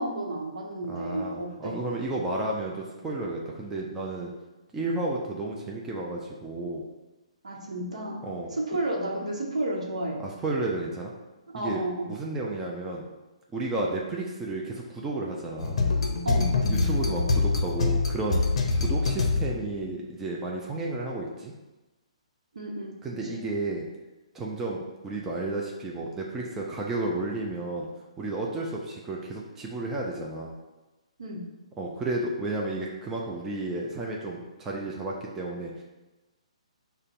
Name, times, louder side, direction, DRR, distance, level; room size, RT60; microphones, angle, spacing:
voice 1, 0.0-1.8 7.4-8.2 8.5-10.2 11.5-12.1 16.2-16.6 22.5-23.0 23.2-23.4 31.2-31.5, right 1 dB, 70° right, -1 dB, 0.9 m, -32 dB
voice 2, 0.9-4.3 4.7-6.9 8.2-8.6 10.2-11.1 11.5-13.1 13.5-15.8 16.7-18.4 18.7-21.5 23.0-23.9 24.3-27.9 28.2-30.5 31.8-35.8, right 2 dB, 10° right, -3 dB, 0.4 m, -32 dB
sound 1, 15.6-19.8, left 3 dB, 60° left, 0.5 m, -25 dB
6.4 x 2.2 x 2.5 m, 1.1 s
figure-of-eight pair, 130°, 4 cm